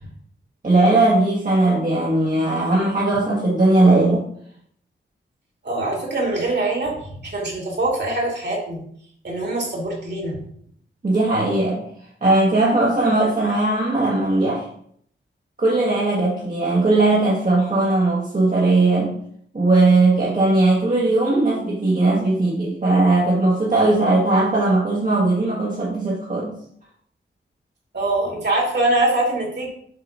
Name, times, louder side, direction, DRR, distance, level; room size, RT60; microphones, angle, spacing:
voice 1, 0.6-4.2 11.0-11.9 12.2-14.7 15.6-19.1 19.5-26.6, right 2 dB, 40° right, -6 dB, 1.6 m, -18 dB
voice 2, 5.6-8.8 9.2-10.4 27.9-29.7, right 2 dB, 55° right, -2 dB, 2.6 m, -23 dB
7.7 x 2.9 x 5.2 m, 0.65 s
wide cardioid pair, 105°, 21 cm